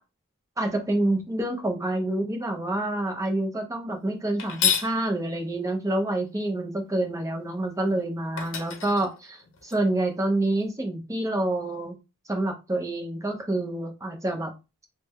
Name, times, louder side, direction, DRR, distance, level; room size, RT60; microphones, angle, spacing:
voice 1, 0.6-12.0 12.3-14.5, right 1 dB, 15° right, 4 dB, 0.6 m, -27 dB
sound 1, 4.4-5.0 7.9-8.0 8.4-9.8, left 8 dB, 55° left, 0.7 m, -28 dB
3.3 x 2.1 x 3.4 m, 0.27 s
head